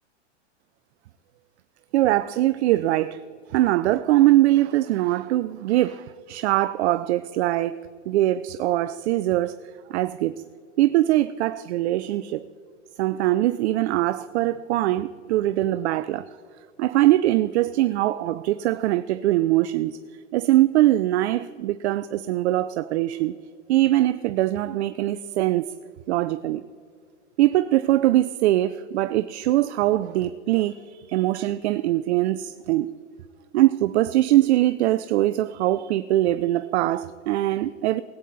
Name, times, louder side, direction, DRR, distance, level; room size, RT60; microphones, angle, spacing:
voice 1, 1.9-3.2 3.5-7.8 8.1-9.5 9.9-10.4 10.8-12.5 13.0-16.3 16.8-20.0 20.3-23.4 23.7-25.7 26.1-26.6 27.4-32.9 33.5-38.0, right 15 dB, 65° right, 0.5 m, -22 dB
19.0 x 9.1 x 4.0 m
hypercardioid pair, 115°, 36 cm